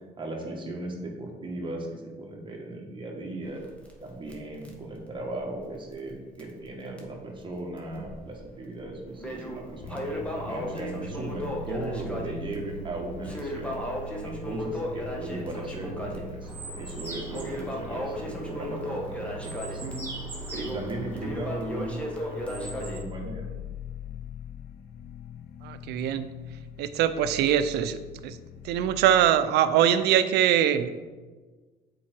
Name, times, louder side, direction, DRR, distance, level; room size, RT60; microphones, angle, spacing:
voice 1, 0.0-3.6 4.0-13.8 14.2-20.0 20.5-23.5, right 1 dB, 30° right, 0 dB, 1.6 m, -37 dB
Crackle, 3.4-6.1 6.4-6.5 7.0-7.1 7.8-8.4 8.8-23.0, equal, 5° left, 1.2 m, -36 dB
sound 1, 9.8-29.3, left 2 dB, 65° left, 0.6 m, -42 dB
sound 2, 16.4-23.0, right 2 dB, 15° right, 2.4 m, -43 dB
voice 2, 25.6-26.3 26.8-28.0 28.2-28.4 28.6-30.9, right 10 dB, 80° right, 12 dB, 0.5 m, -22 dB
7.5 x 4.6 x 4.6 m, 1.4 s
cardioid pair, 110°, 17 cm